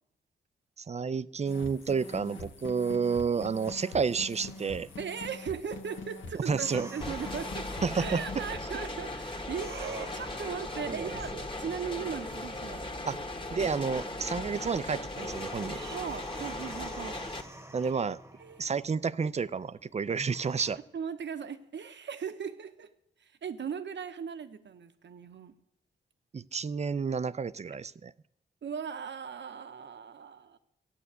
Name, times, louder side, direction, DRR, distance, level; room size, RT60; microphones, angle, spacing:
voice 1, 0.8-4.9 6.5-6.9 7.8-8.4 10.9-11.4 13.1-13.2 13.5-15.8 17.7-18.2 18.6-20.8 26.3-28.1, right 5 dB, 35° right, 17 dB, 0.5 m, -30 dB
sound 1, 1.4-8.6, left 3 dB, 85° left, 1.3 m, -44 dB
sound 2, 3.6-20.7, right 1 dB, 15° right, 1.1 m, -53 dB
voice 2, 5.0-7.6 7.9-13.2 15.7-17.2 17.9-18.0 18.4-18.7 20.9-22.9 23.2-25.5 28.6-30.6, right 7 dB, 70° right, 10 dB, 1.0 m, -38 dB
sound 3, 7.0-17.4, left 2 dB, 25° left, 1.5 m, -38 dB
14.0 x 9.0 x 8.2 m, 0.83 s
cardioid pair, 75°, 20 cm